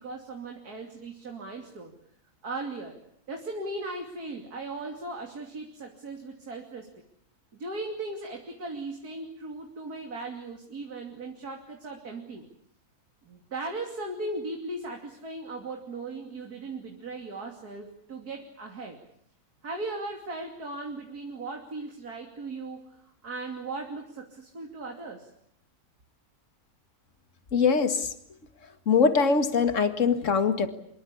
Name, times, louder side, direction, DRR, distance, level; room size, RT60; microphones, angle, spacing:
voice 1, 0.0-1.9 2.4-3.0 3.3-6.9 7.5-12.5 13.2-19.0 19.6-25.3, right 2 dB, 80° right, 2 dB, 3.4 m, -38 dB
voice 2, 27.5-28.1 28.9-30.7, left 5 dB, 55° left, 8 dB, 2.2 m, -22 dB
26.5 x 22.5 x 8.6 m, 0.70 s
omnidirectional pair, 1.6 m